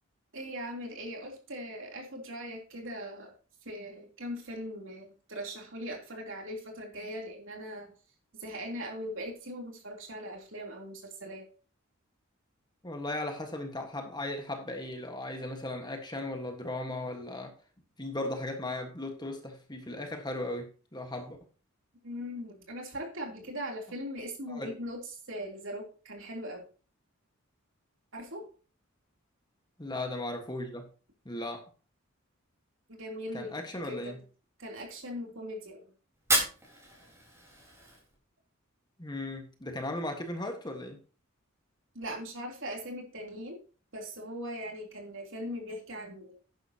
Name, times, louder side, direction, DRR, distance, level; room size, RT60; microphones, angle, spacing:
voice 1, 0.3-3.3 3.6-7.9 8.4-11.5 22.0-25.0 25.3-26.6 28.1-28.4 32.9-34.2 34.6-35.9 41.9-43.6 43.9-46.4, equal, 60° right, 1 dB, 3.3 m, -40 dB
voice 2, 12.8-17.5 18.0-21.4 24.5-24.7 29.8-30.9 31.2-31.7 33.3-34.2 39.0-41.0, left 1 dB, 20° left, 4 dB, 1.5 m, -37 dB
Fire, 36.1-38.2, right 1 dB, 15° right, 4.1 m, -32 dB
11.0 x 10.5 x 2.9 m, 0.36 s
head